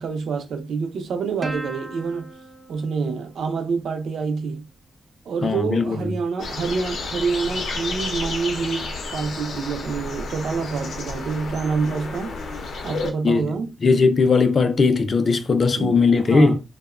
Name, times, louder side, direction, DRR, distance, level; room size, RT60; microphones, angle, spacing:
voice 1, 0.0-2.3 2.7-4.7 5.3-12.3 12.8-13.7 15.8-16.6, right 5 dB, 90° right, 0.5 m, -27 dB
Plucked string instrument, 1.4-4.2, right 2 dB, 30° right, 0.4 m, -38 dB
voice 2, 5.4-6.1 13.2-13.5 13.8-16.6, left 4 dB, 40° left, 0.3 m, -19 dB
sound 1, 6.4-13.1, left 3 dB, 90° left, 0.5 m, -31 dB
2.8 x 2.0 x 2.3 m
wide cardioid pair, 155°, 0 cm